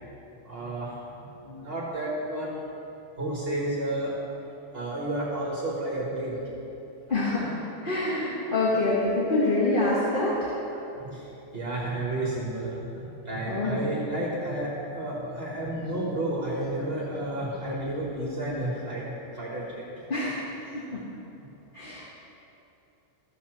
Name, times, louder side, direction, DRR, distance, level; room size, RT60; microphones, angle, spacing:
voice 1, 0.5-1.0 1.4-2.7 3.2-4.1 4.7-6.4 7.1-7.2 10.7-11.3 11.5-19.8, right 1 dB, 50° right, -5 dB, 1.8 m, -31 dB
voice 2, 7.1-7.5 7.8-10.5 13.5-13.8 20.1-21.0 21.7-22.0, left 2 dB, 45° left, -7 dB, 1.5 m, -26 dB
14.0 x 5.7 x 6.0 m, 3.0 s
omnidirectional pair, 1.3 m